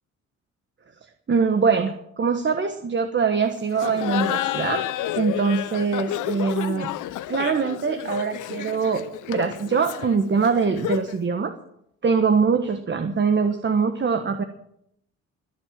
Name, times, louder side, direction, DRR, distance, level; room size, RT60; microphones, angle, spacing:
voice 1, 1.3-4.8 5.1-6.9 7.3-11.5 12.0-14.4, right 5 dB, 40° right, 7 dB, 1.4 m, -23 dB
Laughter, 3.7-11.2, left 13 dB, 85° left, 0.8 m, -30 dB
22.0 x 7.4 x 7.5 m, 0.73 s
cardioid pair, 90°, 30 cm